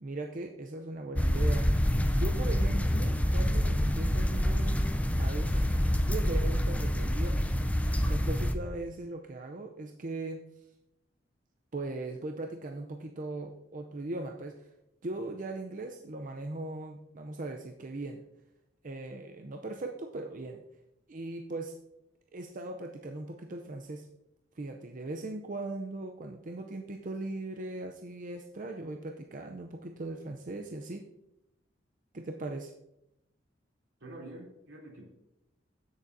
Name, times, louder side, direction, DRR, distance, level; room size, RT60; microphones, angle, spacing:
voice 1, 0.0-4.8 5.2-5.7 6.1-7.6 8.1-10.4 11.7-14.7 15.0-18.2 18.8-20.6 21.1-21.7 22.3-24.1 24.6-31.1 32.1-32.7, right 2 dB, 45° right, 3 dB, 0.6 m, -39 dB
sound 1, 1.2-8.6, equal, 5° left, 0.5 m, -27 dB
voice 2, 34.0-35.1, right 1 dB, 80° right, -2 dB, 3.1 m, -46 dB
16.0 x 6.7 x 2.7 m, 0.87 s
head